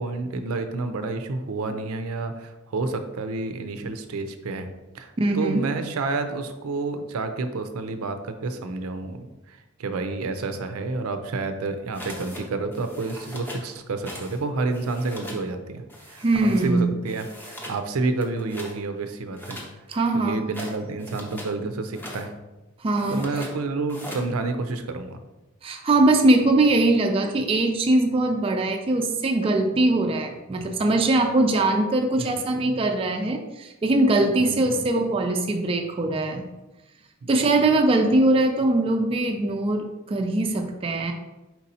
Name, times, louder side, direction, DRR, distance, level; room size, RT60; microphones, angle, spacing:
voice 1, 0.0-4.7 4.9-19.6 20.1-22.3 23.1-25.2 32.2-32.3 34.4-34.8 37.2-37.3, right 3 dB, 85° right, 8 dB, 0.5 m, -29 dB
voice 2, 5.2-5.7 16.2-16.9 19.9-20.4 22.8-23.3 25.6-36.4 37.3-41.1, right 2 dB, 25° right, 4 dB, 0.3 m, -21 dB
sound 1, 11.9-12.4 12.7-13.7 14.0-14.4 14.6-15.4 15.9-16.7 17.1-17.8 18.2-18.8 19.3-21.5 21.9-22.3 22.9-23.5 23.9-24.3, equal, 10° left, 0.6 m, -40 dB
4.5 x 4.1 x 2.7 m, 1.1 s
head